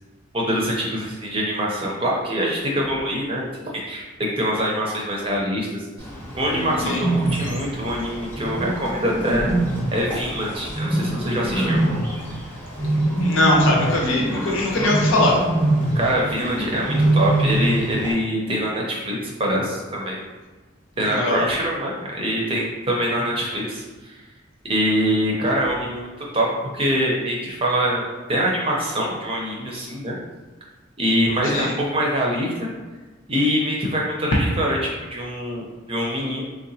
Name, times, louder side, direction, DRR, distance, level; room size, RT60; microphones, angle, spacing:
voice 1, 0.3-3.4 3.7-5.8 6.3-9.4 9.9-11.8 15.9-20.2 21.0-24.2 24.7-30.2 31.0-32.7 33.3-35.6 35.9-36.4, equal, 25° right, -3 dB, 0.5 m, -24 dB
Bird, 6.0-18.1, right 1 dB, 10° left, 0.7 m, -24 dB
voice 2, 13.2-15.4 21.0-21.4 31.5-31.7, left 2 dB, 75° left, -2 dB, 0.7 m, -21 dB
3.7 x 2.2 x 2.7 m, 1.3 s
head